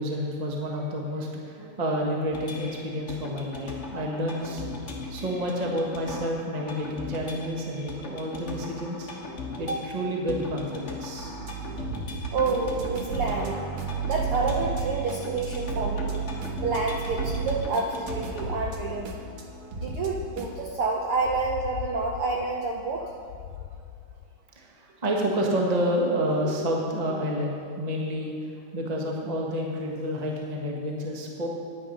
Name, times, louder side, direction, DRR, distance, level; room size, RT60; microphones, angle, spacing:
voice 1, 0.0-4.6 5.1-9.1 9.6-11.3 24.5-28.3 28.7-31.5, equal, 40° right, -1 dB, 0.5 m, -29 dB
sound 1, 2.3-18.5, left 3 dB, 40° left, 1.0 m, -39 dB
sound 2, 11.2-20.6, right 6 dB, 60° right, 1.7 m, -33 dB
voice 2, 12.3-13.6 14.0-16.2 16.6-19.1 19.7-23.0, right 4 dB, 75° right, 0 dB, 1.3 m, -28 dB
sound 3, 18.3-24.4, left 10 dB, 80° left, 1.9 m, -40 dB
10.0 x 9.9 x 5.5 m, 2.5 s
omnidirectional pair, 3.4 m